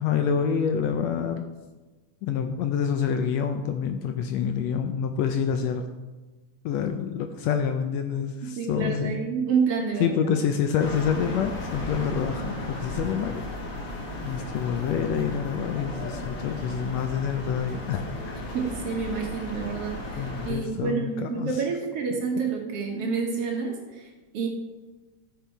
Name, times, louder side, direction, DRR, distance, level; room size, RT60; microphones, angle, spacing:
voice 1, 0.0-1.5 2.2-5.9 6.6-9.2 10.0-13.4 14.2-18.4 20.2-21.6, left 7 dB, 75° left, 6 dB, 1.6 m, -27 dB
voice 2, 8.4-10.3 18.5-24.5, right 5 dB, 60° right, 1 dB, 1.9 m, -29 dB
sound 1, 10.8-20.5, left 2 dB, 55° left, 2.5 m, -35 dB
13.5 x 5.5 x 4.6 m, 1.2 s
omnidirectional pair, 3.4 m